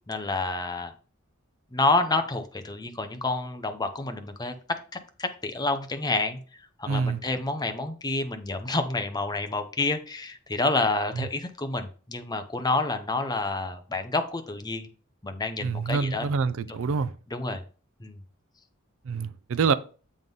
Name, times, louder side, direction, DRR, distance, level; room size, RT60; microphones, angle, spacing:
voice 1, 0.1-0.9 1.7-4.8 5.2-6.4 6.8-14.9 15.2-16.3 16.6-16.7 17.3-17.6 18.0-18.2, left 2 dB, 20° left, 0.7 m, -28 dB
voice 2, 6.9-7.2 11.2-11.3 15.6-17.1 19.1-19.7, right 5 dB, 65° right, 0.4 m, -26 dB
7.7 x 3.8 x 5.3 m
head